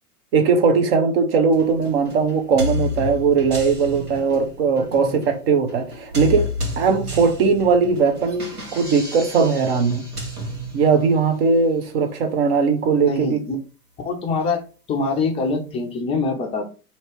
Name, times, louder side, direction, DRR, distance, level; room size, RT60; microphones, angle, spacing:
voice 1, 0.3-6.5 6.8-10.1 10.7-13.4, right 5 dB, 40° right, 0.8 m, -19 dB
sound 1, 1.5-11.4, left 1 dB, 85° right, 1.6 m, -31 dB
voice 2, 4.7-5.2 13.0-13.6 14.0-14.6 14.9-16.6, left 3 dB, 15° left, 0.5 m, -24 dB
2.9 x 2.8 x 4.5 m
figure-of-eight pair, 100°, 44 cm